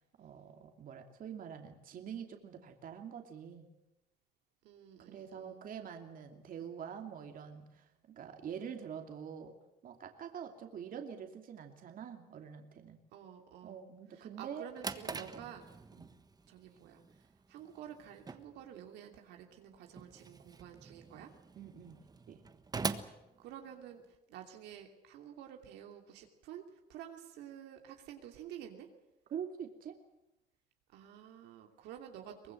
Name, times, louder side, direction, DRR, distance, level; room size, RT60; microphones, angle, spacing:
voice 1, 0.2-3.7 5.0-9.6 9.8-13.0 13.6-14.7 15.1-15.4 15.9-16.1 21.6-22.0 22.3-22.4 29.3-30.0, right 8 dB, 55° right, 5 dB, 2.8 m, -45 dB
voice 2, 4.6-5.6 13.1-13.8 14.1-15.6 16.5-17.0 17.5-21.3 23.4-24.0 24.3-28.9 30.9-32.5, right 10 dB, 85° right, 3 dB, 2.9 m, -50 dB
Drawer open or close, 14.4-24.2, right 4 dB, 25° right, 1.4 m, -45 dB
23.5 x 19.5 x 7.9 m, 0.94 s
cardioid pair, 110°, 17 cm